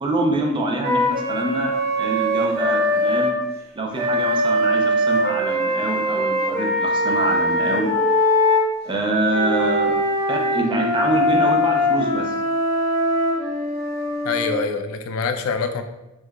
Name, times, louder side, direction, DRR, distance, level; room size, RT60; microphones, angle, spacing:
voice 1, 0.0-1.7 2.0-3.4 3.7-7.9 8.8-10.0 10.3-12.3, right 2 dB, 25° right, 1 dB, 0.4 m, -25 dB
Wind instrument woodwind instrument, 0.8-3.3 3.9-8.7 9.3-14.6, left 1 dB, 50° right, 0.8 m, -21 dB
voice 2, 14.2-15.8, left 4 dB, 75° left, 7 dB, 0.3 m, -25 dB
4.5 x 2.2 x 2.3 m, 0.97 s
head